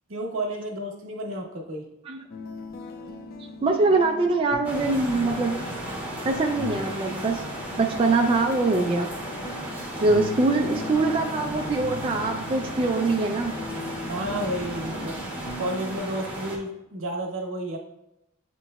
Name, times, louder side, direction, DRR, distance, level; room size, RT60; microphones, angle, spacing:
voice 1, 0.1-1.9 14.1-15.2 15.6-17.8, right 1 dB, 75° right, 0 dB, 1.0 m, -31 dB
sound 1, 2.3-16.0, left 3 dB, 50° left, 0.4 m, -40 dB
voice 2, 3.6-5.7 6.2-7.4 7.8-9.1 10.0-13.6, right 3 dB, 25° right, 2 dB, 0.3 m, -23 dB
sound 2, 4.6-16.6, right 1 dB, 10° right, 0.9 m, -35 dB
7.9 x 3.0 x 2.3 m, 0.89 s
head